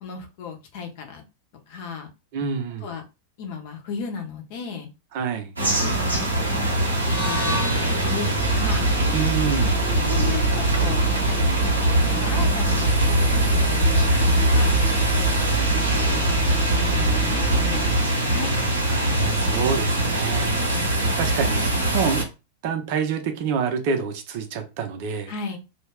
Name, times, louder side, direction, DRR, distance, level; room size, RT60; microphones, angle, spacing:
voice 1, 0.0-1.2 1.7-2.1 2.8-3.0 3.4-4.9 5.6-7.7 8.0-8.9 9.6-11.8 12.1-18.6 20.4-20.9 25.3-25.6, left 6 dB, 50° left, 0.6 m, -35 dB
voice 2, 2.3-2.9 5.1-5.5 9.1-9.8 18.9-20.8 21.2-21.6 21.9-22.3 22.6-25.3, right 6 dB, 50° right, 0.6 m, -27 dB
sound 1, 5.6-22.2, right 1 dB, 75° right, 0.8 m, -22 dB
sound 2, 7.0-11.2, equal, 75° left, 0.8 m, -34 dB
sound 3, 8.4-18.0, right 7 dB, 5° right, 0.6 m, -28 dB
2.3 x 2.1 x 3.4 m
figure-of-eight pair, 90°, 0 cm